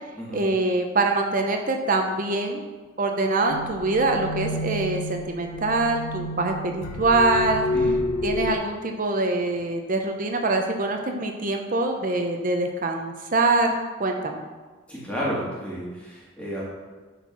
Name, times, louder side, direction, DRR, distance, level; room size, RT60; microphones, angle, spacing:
voice 1, 0.3-2.6 3.0-7.6 8.2-14.4, right 2 dB, 40° right, 4 dB, 0.6 m, -24 dB
sound 1, 3.5-8.5, left 1 dB, 85° left, 1.0 m, -29 dB
voice 2, 14.9-16.6, equal, 5° left, -7 dB, 2.2 m, -31 dB
9.2 x 4.4 x 6.1 m, 1.3 s
head